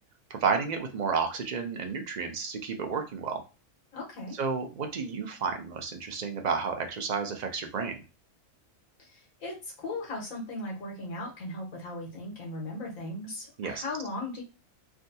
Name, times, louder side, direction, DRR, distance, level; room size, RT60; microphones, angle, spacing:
voice 1, 0.3-3.4 4.4-8.0 13.6-13.8, right 5 dB, 65° right, 5 dB, 0.4 m, -31 dB
voice 2, 3.9-4.4 9.0-14.4, left 2 dB, 80° left, -2 dB, 1.7 m, -37 dB
3.5 x 2.2 x 2.7 m, 0.30 s
omnidirectional pair, 1.4 m